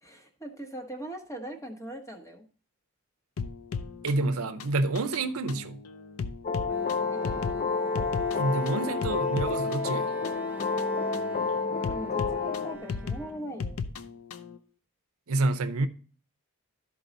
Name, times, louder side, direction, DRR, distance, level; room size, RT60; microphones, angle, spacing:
voice 1, 0.0-2.5 7.1-7.5 11.9-13.8, right 1 dB, 15° left, 1.1 m, -40 dB
sound 1, 3.4-14.6, left 5 dB, 85° left, 0.6 m, -37 dB
voice 2, 4.0-5.8 8.3-10.1 15.3-15.9, right 2 dB, 80° right, 0.6 m, -28 dB
sound 2, 6.4-12.8, left 4 dB, 40° left, 0.4 m, -29 dB
Bowed string instrument, 6.7-14.1, equal, 10° right, 0.7 m, -45 dB
12.5 x 4.7 x 4.0 m
head